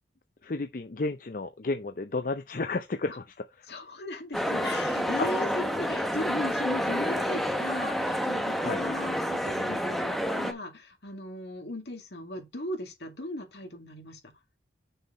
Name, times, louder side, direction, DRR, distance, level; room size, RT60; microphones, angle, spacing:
voice 1, 0.4-3.7 5.2-5.3 8.6-8.8, left 3 dB, 50° left, 0.5 m, -32 dB
voice 2, 3.7-14.2, left 1 dB, 70° left, 2.3 m, -37 dB
sound 1, 4.3-10.5, equal, ahead, 0.8 m, -29 dB
6.5 x 4.6 x 5.5 m
head